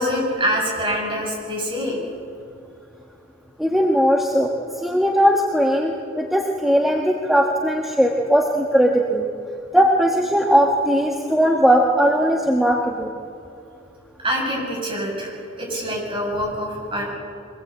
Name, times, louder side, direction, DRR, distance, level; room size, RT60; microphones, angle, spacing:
voice 1, 0.0-2.0 14.2-17.1, equal, 25° right, -3 dB, 7.7 m, -25 dB
voice 2, 3.6-4.5 4.8-9.3 9.7-13.1, equal, ahead, -1 dB, 1.5 m, -18 dB
24.0 x 19.5 x 8.5 m, 2.6 s
head